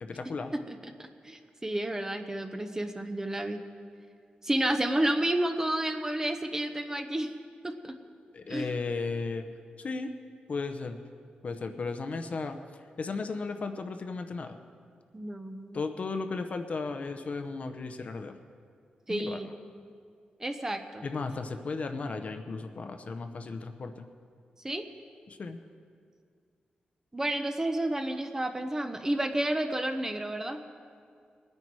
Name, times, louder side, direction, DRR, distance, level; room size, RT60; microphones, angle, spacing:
voice 1, 0.0-0.5 8.3-9.5 9.8-10.1 10.5-11.0 11.4-12.6 13.0-14.6 15.7-18.4 19.1-19.4 21.0-24.1 25.3-25.6, left 4 dB, 50° left, 7 dB, 0.8 m, -35 dB
voice 2, 0.7-3.6 4.4-7.3 7.6-7.9 8.5-8.7 15.1-15.8 19.1-19.5 20.4-21.0 24.6-24.8 27.1-30.6, right 1 dB, 15° right, 6 dB, 0.8 m, -31 dB
21.0 x 9.8 x 4.7 m, 2.2 s
wide cardioid pair, 125°, 3 cm